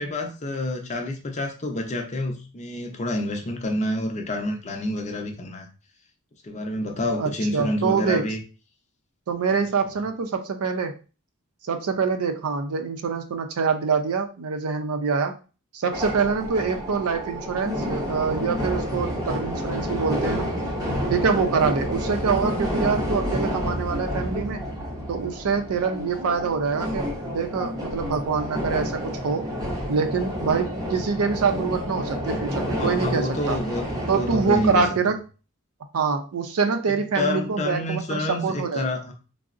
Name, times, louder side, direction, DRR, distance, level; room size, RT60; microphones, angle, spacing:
voice 1, 0.0-5.7 6.4-8.4 32.8-34.8 36.9-39.1, left 1 dB, 30° left, 3 dB, 0.5 m, -28 dB
voice 2, 7.2-8.2 9.3-10.9 11.6-15.4 15.7-20.5 21.1-24.6 25.1-29.4 29.9-33.6 34.1-35.2 35.9-38.9, right 5 dB, 85° right, 6 dB, 0.5 m, -25 dB
sound 1, 15.9-34.9, equal, 15° right, 0.6 m, -29 dB
3.6 x 2.0 x 2.4 m, 0.34 s
head